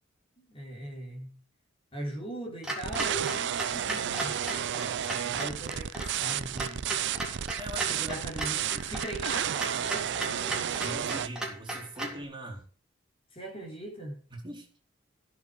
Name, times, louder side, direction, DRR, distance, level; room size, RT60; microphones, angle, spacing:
voice 1, 0.4-1.3 1.9-4.4 5.3-6.9 7.8-11.0 13.3-14.2, right 1 dB, 30° left, 3.6 m, -40 dB
Clock, 2.6-12.2, right 1 dB, 5° right, 3.5 m, -37 dB
sound 1, 2.8-11.3, right 9 dB, 60° right, 0.5 m, -32 dB
voice 2, 7.6-8.2 9.7-9.9 10.8-12.6 14.3-14.7, equal, 25° right, 4.2 m, -41 dB
15.5 x 7.5 x 5.1 m
head